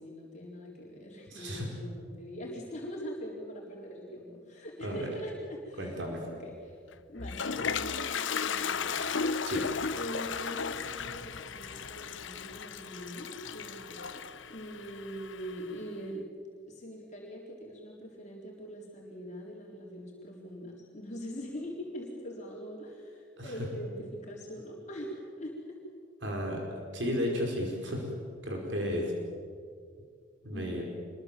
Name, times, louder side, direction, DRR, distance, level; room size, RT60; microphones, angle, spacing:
voice 1, 0.0-6.8 7.1-9.0 9.9-16.3 16.7-25.8 30.5-30.8, equal, 40° left, -3 dB, 4.0 m, -42 dB
voice 2, 1.3-1.7 4.8-5.1 5.8-6.2 9.5-9.6 23.4-23.5 26.2-26.6 26.9-28.1 28.4-29.1 30.4-30.8, equal, 75° right, 0 dB, 4.9 m, -33 dB
Toilet flush, 6.9-15.8, left 5 dB, 90° left, 0.9 m, -35 dB
26.0 x 22.5 x 7.6 m, 2.2 s
head